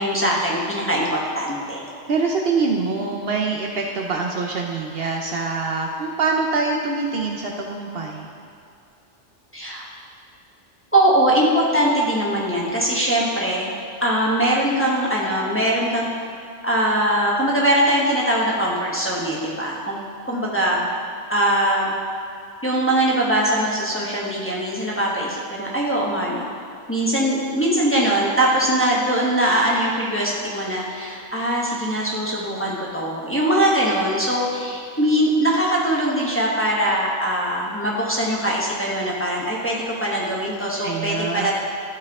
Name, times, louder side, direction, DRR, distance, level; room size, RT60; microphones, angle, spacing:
voice 1, 0.0-1.8 9.5-9.9 10.9-13.7 14.0-16.1 16.6-20.0 20.2-20.9 21.3-21.9 22.6-26.6 26.9-41.5, right 1 dB, 10° left, -5 dB, 1.0 m, -21 dB
voice 2, 2.1-8.3 40.8-41.5, right 4 dB, 60° right, 1 dB, 0.8 m, -24 dB
13.0 x 4.3 x 3.6 m, 2.5 s
omnidirectional pair, 1.2 m